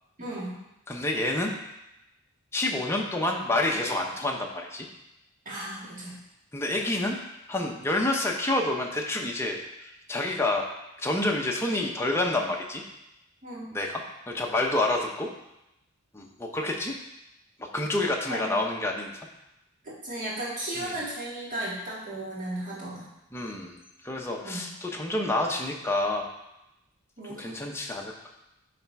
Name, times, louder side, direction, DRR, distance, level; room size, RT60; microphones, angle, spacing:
voice 1, 0.2-0.6 5.5-6.2 13.4-13.7 18.3-18.5 20.0-23.1 24.4-24.7 27.2-27.6, right 1 dB, 35° right, -7 dB, 2.0 m, -35 dB
voice 2, 0.9-1.6 2.5-4.9 6.5-7.2 7.5-10.7 11.0-12.8 13.7-15.3 16.1-17.0 17.6-19.3 20.8-21.0 23.3-26.3 27.3-28.3, left 2 dB, 10° left, 0 dB, 0.8 m, -28 dB
9.9 x 3.4 x 4.6 m, 0.89 s
head